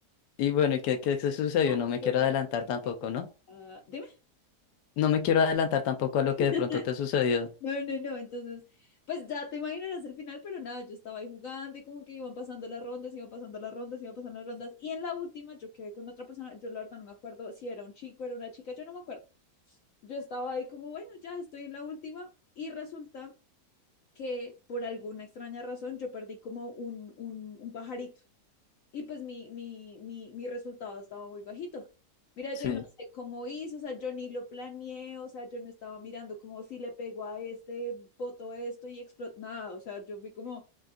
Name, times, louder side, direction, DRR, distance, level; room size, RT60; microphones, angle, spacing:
voice 1, 0.4-3.3 5.0-6.7 7.0-7.5 32.6-32.8, left 7 dB, 85° left, 1.2 m, -27 dB
voice 2, 1.6-2.3 3.5-4.2 6.4-6.9 7.6-19.2 19.7-19.8 20.0-23.3 24.2-28.1 28.9-31.9 32.4-32.9 33.1-40.6, left 3 dB, 65° left, 0.9 m, -39 dB
6.1 x 2.3 x 2.5 m
omnidirectional pair, 1.8 m